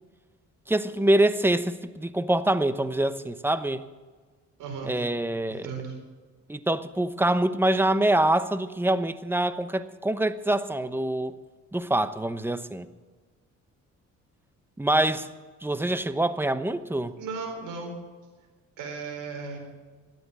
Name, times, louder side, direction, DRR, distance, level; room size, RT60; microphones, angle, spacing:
voice 1, 0.7-3.8 4.8-5.7 6.5-11.4 11.7-12.9 14.8-15.3 15.6-17.2, right 1 dB, 5° right, 13 dB, 0.9 m, -25 dB
voice 2, 4.6-5.0 5.5-5.9 17.2-17.9 18.8-19.6, right 4 dB, 90° right, 2 dB, 4.5 m, -35 dB
13.0 x 9.5 x 9.1 m, 1.4 s
cardioid pair, 90°, 30 cm